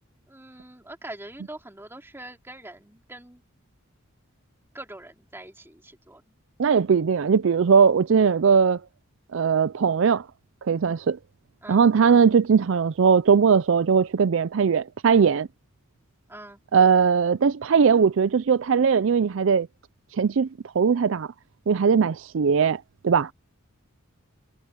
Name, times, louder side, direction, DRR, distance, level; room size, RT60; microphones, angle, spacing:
voice 1, 0.3-3.4 4.7-6.3 11.6-11.8 16.3-16.6, right 1 dB, 10° right, 3.2 m, -43 dB
voice 2, 6.6-8.8 9.3-10.2 10.7-11.2 11.7-15.5 16.7-19.7 20.2-20.5 20.8-21.3 21.7-23.3, right 6 dB, 65° right, 0.4 m, -20 dB
head